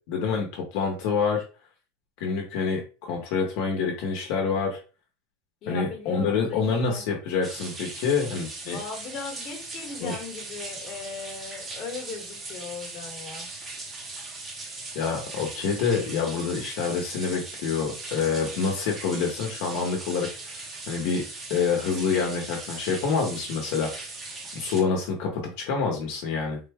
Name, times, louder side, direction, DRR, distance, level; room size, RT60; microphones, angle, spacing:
voice 1, 0.1-1.4 2.2-4.8 5.7-8.8 10.0-10.1 14.9-21.2 21.5-23.9 24.5-26.6, left 5 dB, 60° left, 1 dB, 1.0 m, -27 dB
voice 2, 5.6-7.0 8.7-13.5, left 5 dB, 35° left, 1 dB, 1.2 m, -38 dB
sound 1, 7.4-24.8, right 3 dB, 20° right, 0.7 m, -39 dB
3.8 x 2.1 x 3.5 m, 0.33 s
supercardioid pair, 165°, 0 cm